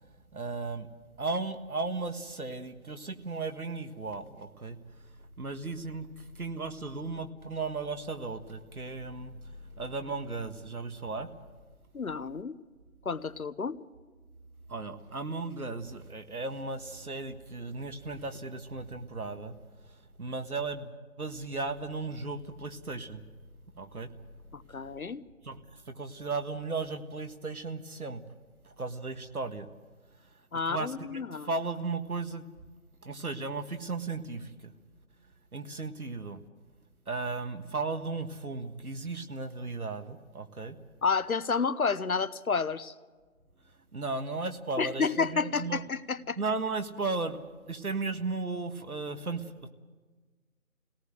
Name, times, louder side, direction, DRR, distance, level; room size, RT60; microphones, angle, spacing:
voice 1, 0.3-0.9 1.2-4.8 5.4-11.3 14.7-19.6 20.2-23.2 23.7-24.1 25.4-25.6 25.9-28.2 28.6-29.7 30.7-32.5 33.0-34.7 35.5-36.4 37.1-40.8 43.9-45.8 46.4-49.7, right 3 dB, 80° right, 8 dB, 1.7 m, -35 dB
voice 2, 11.9-12.5 13.0-13.8 24.5-25.2 30.5-31.5 41.0-42.9 44.8-46.4, left 5 dB, 75° left, 14 dB, 1.1 m, -30 dB
23.5 x 18.0 x 7.9 m, 1.4 s
figure-of-eight pair, 170°, 43 cm